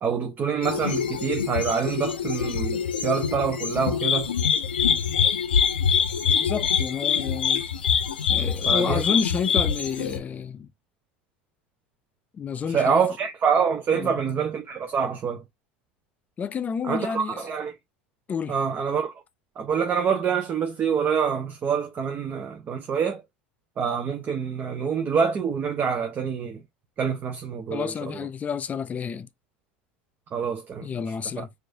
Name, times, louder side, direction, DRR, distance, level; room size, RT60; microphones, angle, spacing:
voice 1, 0.0-4.3 8.7-9.0 12.7-15.4 16.8-17.7 18.5-19.1 19.6-23.2 23.8-26.6 27.0-27.9 30.3-30.9 31.4-31.5, right 6 dB, 35° right, 0.7 m, -26 dB
sound 1, 0.6-10.2, left 7 dB, 85° left, 0.5 m, -24 dB
voice 2, 6.4-7.6 8.3-10.7 12.3-13.0 13.9-14.2 16.4-17.5 18.3-18.6 27.7-29.3 30.8-31.5, left 6 dB, 30° left, 0.4 m, -30 dB
4.5 x 2.6 x 2.6 m
hypercardioid pair, 80°, 5 cm